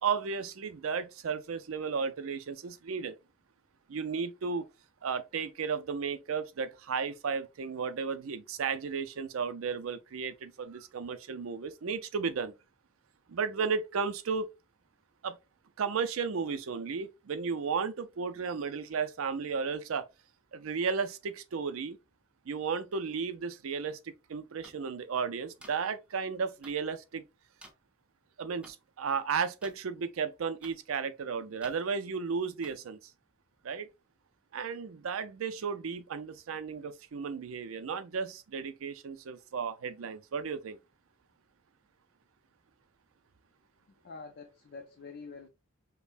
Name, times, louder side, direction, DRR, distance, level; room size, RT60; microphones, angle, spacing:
voice 1, 0.0-3.1 3.9-4.7 5.0-12.5 13.3-14.5 15.2-15.4 15.8-20.0 20.5-22.0 22.5-27.3 28.4-33.0 33.6-33.9 34.5-40.8, right 5 dB, 85° right, 0.5 m, -34 dB
sound 1, 24.6-24.7 25.6-25.7 26.6-26.7 27.6-27.7 28.6-28.7 29.6-29.8 30.6-30.8 31.6-31.8 32.6-32.8, right 1 dB, 5° right, 0.6 m, -51 dB
voice 2, 43.9-45.5, left 4 dB, 55° left, 0.5 m, -46 dB
5.4 x 2.1 x 2.5 m
head